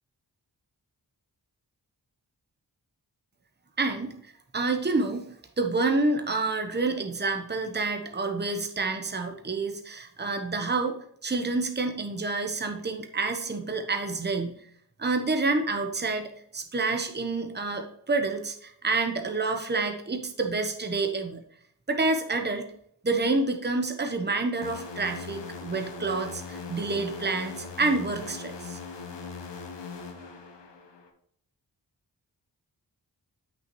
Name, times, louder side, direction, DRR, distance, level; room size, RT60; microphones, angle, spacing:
voice 1, 3.8-4.1 4.5-5.2 5.6-10.9 11.2-14.6 15.0-21.4 21.9-22.7 23.0-28.8, right 3 dB, 25° right, 5 dB, 1.0 m, -28 dB
sound 1, 24.6-31.1, left 5 dB, 85° left, 1.0 m, -40 dB
8.2 x 6.3 x 3.1 m, 0.68 s
cardioid pair, 45°, 42 cm